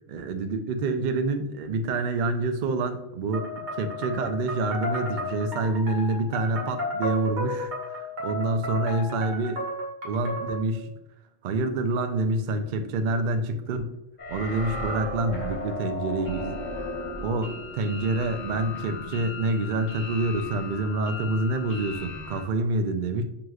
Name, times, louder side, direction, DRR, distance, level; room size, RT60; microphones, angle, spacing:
voice 1, 0.1-9.7 10.0-10.9 11.4-14.0 14.3-16.6 17.2-23.2, right 2 dB, 75° right, 7 dB, 0.4 m, -27 dB
sound 1, 3.3-10.7, left 1 dB, 40° right, 1.0 m, -33 dB
sound 2, 14.2-22.4, left 2 dB, 40° left, 1.0 m, -36 dB
6.2 x 2.9 x 2.3 m, 0.85 s
omnidirectional pair, 1.3 m